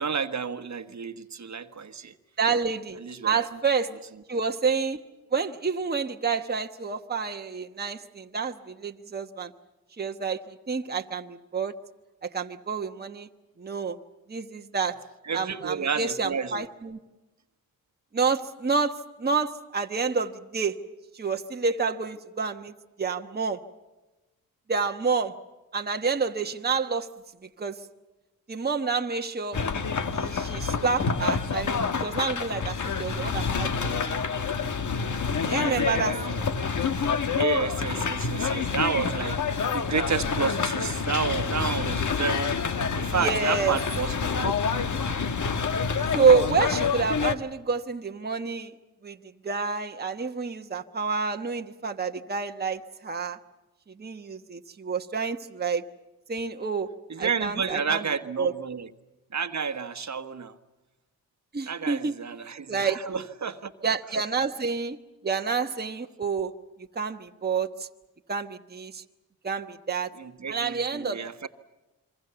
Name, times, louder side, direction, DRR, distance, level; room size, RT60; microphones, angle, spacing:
voice 1, 0.0-2.1 3.0-3.4 15.2-16.6 35.4-36.5 37.3-42.6 43.0-44.5 57.1-58.9 59.3-60.5 61.7-63.7 70.2-71.5, right 6 dB, 50° right, 9 dB, 1.4 m, -31 dB
voice 2, 2.4-3.9 4.3-5.0 5.3-9.5 10.0-11.7 12.2-13.3 13.6-14.0 14.3-15.0 15.3-17.0 18.1-20.8 21.1-22.7 23.0-23.6 24.7-25.3 25.7-27.1 27.6-27.8 28.5-29.6 30.1-34.1 35.5-36.4 43.1-43.8 46.1-48.7 49.0-49.2 49.4-53.4 54.0-55.8 56.3-56.9 57.2-58.1 58.4-58.5 61.5-62.1 62.7-63.0 63.8-65.0 65.2-66.5 66.9-67.9 68.3-69.0 69.4-70.1 70.5-71.5, right 5 dB, 25° right, 4 dB, 1.2 m, -28 dB
sound 1, 29.5-47.4, left 5 dB, 55° left, 1.5 m, -27 dB
27.0 x 24.0 x 7.0 m, 1.1 s
cardioid pair, 65°, 36 cm